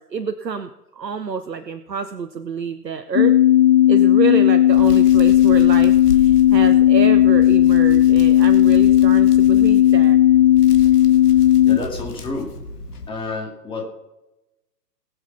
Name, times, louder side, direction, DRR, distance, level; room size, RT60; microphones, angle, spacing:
voice 1, 0.0-3.3 3.9-10.2, right 5 dB, 80° right, 8 dB, 1.0 m, -27 dB
sound 1, 3.2-11.8, left 12 dB, 40° left, 0.6 m, -14 dB
Hands, 4.7-13.1, left 3 dB, 65° left, 2.1 m, -34 dB
voice 2, 11.3-12.5 13.1-13.8, left 3 dB, 10° left, 0 dB, 2.3 m, -30 dB
20.0 x 7.3 x 5.7 m, 0.97 s
figure-of-eight pair, 125°, 49 cm